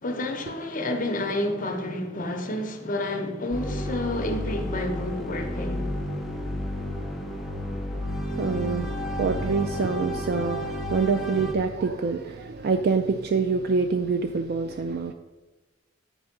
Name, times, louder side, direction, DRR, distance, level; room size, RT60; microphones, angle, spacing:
voice 1, 0.0-5.9, left 1 dB, 40° left, 0.9 m, -30 dB
sound 1, 3.5-11.5, left 1 dB, ahead, 0.8 m, -31 dB
voice 2, 8.3-15.1, right 4 dB, 50° right, 0.3 m, -26 dB
9.7 x 3.5 x 5.9 m
head